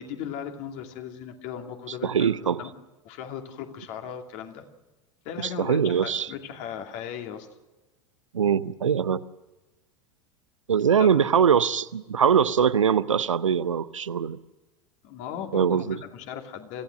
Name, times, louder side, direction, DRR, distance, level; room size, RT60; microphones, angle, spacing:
voice 1, 0.0-2.3 2.6-2.7 3.0-4.6 5.2-7.5 11.0-11.2 15.0-16.8, left 8 dB, 50° left, 4 dB, 2.5 m, -37 dB
voice 2, 2.0-2.6 5.6-6.3 8.3-9.2 10.7-14.4 15.5-16.0, right 7 dB, 80° right, 16 dB, 0.7 m, -22 dB
26.0 x 15.5 x 6.5 m, 1.1 s
figure-of-eight pair, 80°, 16 cm